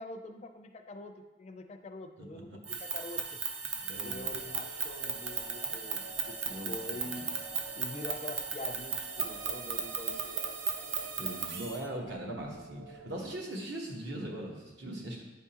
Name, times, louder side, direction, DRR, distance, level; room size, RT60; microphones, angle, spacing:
voice 1, 0.0-3.4 4.0-7.3 7.7-10.5, left 2 dB, 35° left, 6 dB, 0.4 m, -45 dB
sound 1, 2.6-11.8, right 6 dB, 80° right, 0.6 m, -36 dB
voice 2, 3.8-4.5 5.6-5.7 6.5-7.3 11.1-15.2, right 1 dB, 65° right, -1 dB, 1.1 m, -41 dB
sound 2, 3.9-13.4, right 2 dB, 40° right, 1.3 m, -51 dB
9.4 x 3.6 x 2.8 m, 1.2 s
head